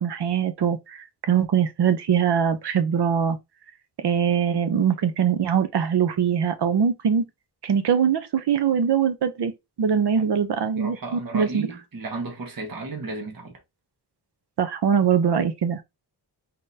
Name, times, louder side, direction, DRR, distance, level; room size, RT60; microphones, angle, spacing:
voice 1, 0.0-3.4 4.0-7.3 7.6-9.5 9.8-11.7 14.6-15.8, right 7 dB, 70° right, 0.8 m, -22 dB
voice 2, 10.7-13.6, right 3 dB, 55° right, 1.4 m, -34 dB
3.8 x 3.8 x 2.7 m
wide cardioid pair, 175°, 42 cm